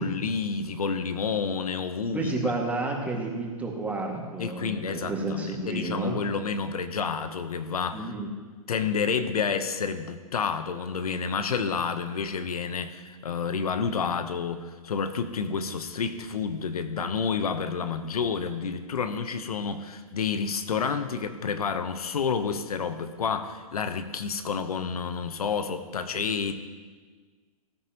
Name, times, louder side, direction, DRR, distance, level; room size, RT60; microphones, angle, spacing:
voice 1, 0.0-2.3 4.4-8.1 8.7-26.5, left 5 dB, 80° left, 10 dB, 1.0 m, -29 dB
voice 2, 2.1-6.2 7.9-8.3, right 2 dB, 10° right, -1 dB, 2.1 m, -31 dB
19.5 x 9.9 x 3.0 m, 1.5 s
hypercardioid pair, 135°, 19 cm